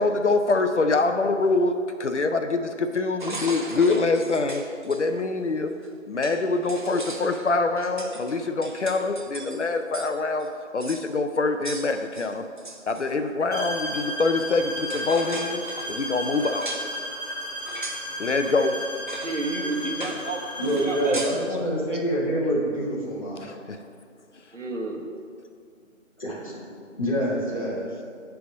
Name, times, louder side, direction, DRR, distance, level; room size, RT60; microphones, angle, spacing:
voice 1, 0.0-1.7 2.0-5.7 6.1-10.5 10.7-12.4 12.9-15.6 15.9-16.8 18.2-18.7 23.4-23.8, left 3 dB, 65° left, 7 dB, 0.6 m, -24 dB
sound 1, 3.2-5.0 5.8-5.9 6.2-10.1 10.4-10.5 10.8-11.1 11.6-13.1 14.4-14.5 14.8-16.9 17.6-18.1 18.4-18.6 19.1-19.4 19.7-20.3 20.6-21.5, right 2 dB, 40° right, 0.5 m, -38 dB
sound 2, 13.5-21.3, equal, 15° right, 1.8 m, -34 dB
voice 2, 19.2-21.4 21.9-22.0 24.5-25.1, right 2 dB, 70° right, 2 dB, 1.2 m, -31 dB
voice 3, 20.6-23.5 26.2-26.6 26.9-27.9, right 1 dB, 25° left, -5 dB, 1.4 m, -26 dB
10.0 x 3.5 x 5.2 m, 2.3 s
figure-of-eight pair, 165°, 39 cm